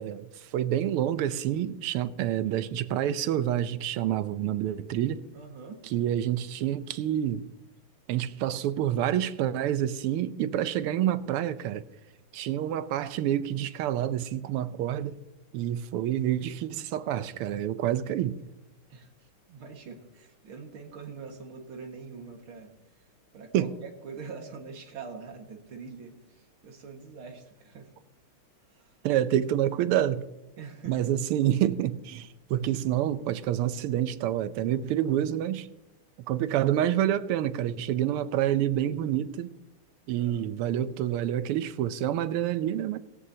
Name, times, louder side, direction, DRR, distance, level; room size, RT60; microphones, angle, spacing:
voice 1, 0.0-5.2 5.9-7.4 8.1-11.8 12.3-15.2 15.5-18.3 23.5-23.7 29.0-30.2 30.9-35.7 36.3-39.5 40.1-43.0, right 11 dB, 85° right, 1.6 m, -28 dB
voice 2, 5.3-5.8 18.9-22.7 23.3-27.9 28.7-29.0 30.6-31.1 40.1-40.5, right 5 dB, 65° right, 2.6 m, -44 dB
17.5 x 16.5 x 2.8 m
omnidirectional pair, 2.4 m